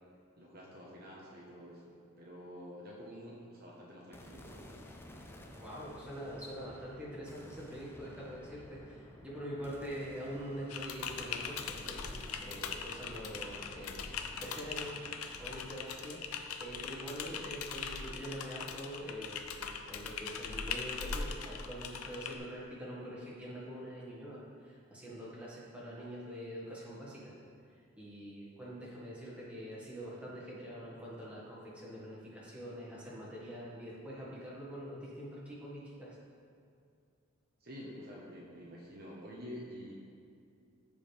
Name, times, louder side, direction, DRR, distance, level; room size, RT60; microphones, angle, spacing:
voice 1, 0.4-4.7 37.6-39.9, equal, 45° right, -4 dB, 1.2 m, -48 dB
sound 1, 4.1-18.4, left 1 dB, 10° left, 0.5 m, -54 dB
voice 2, 5.6-14.0 14.4-15.0 15.4-27.4 27.7-36.2, equal, 5° right, -7 dB, 1.8 m, -44 dB
Typing, 10.7-22.4, left 6 dB, 85° left, 0.6 m, -41 dB
14.5 x 5.1 x 3.5 m, 2.3 s
head